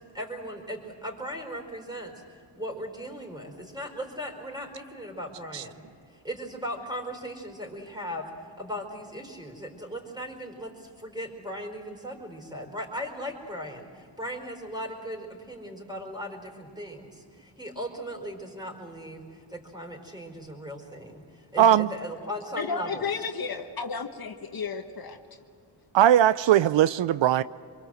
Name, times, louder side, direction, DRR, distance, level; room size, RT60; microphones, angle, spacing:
voice 1, 0.1-5.8 6.1-8.3 8.6-23.3, equal, 10° right, 4.8 m, -38 dB
voice 2, 21.6-21.9 25.9-27.4, right 11 dB, 75° right, 0.6 m, -19 dB
voice 3, 22.6-25.2, left 5 dB, 50° left, 1.5 m, -32 dB
26.0 x 22.5 x 7.8 m
cardioid pair, 85°, 45 cm